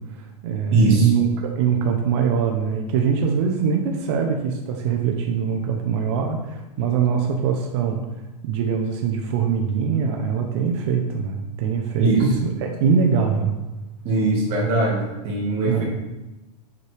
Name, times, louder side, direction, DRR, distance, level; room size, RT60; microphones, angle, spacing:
voice 1, 0.0-8.0 8.4-13.6 15.6-15.8, right 6 dB, 45° right, 2 dB, 0.7 m, -23 dB
voice 2, 0.7-1.1 12.0-12.5 14.0-15.8, right 3 dB, 30° right, -2 dB, 1.6 m, -20 dB
7.3 x 4.7 x 3.3 m, 1.0 s
supercardioid pair, 170°, 20 cm